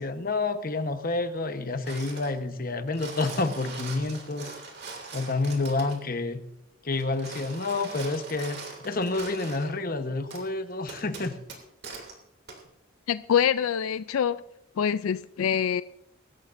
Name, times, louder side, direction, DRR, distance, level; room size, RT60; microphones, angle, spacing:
voice 1, 0.0-4.5 5.1-6.4 6.8-11.4, left 3 dB, 45° left, 1.1 m, -29 dB
sound 1, 1.8-2.4 2.8-6.0 6.9-9.7 10.3-10.4 10.9-12.1 12.5-12.6, right 3 dB, 50° right, 2.8 m, -41 dB
voice 2, 13.1-14.4 14.8-15.8, left 8 dB, 90° left, 0.4 m, -25 dB
24.0 x 13.0 x 2.6 m
head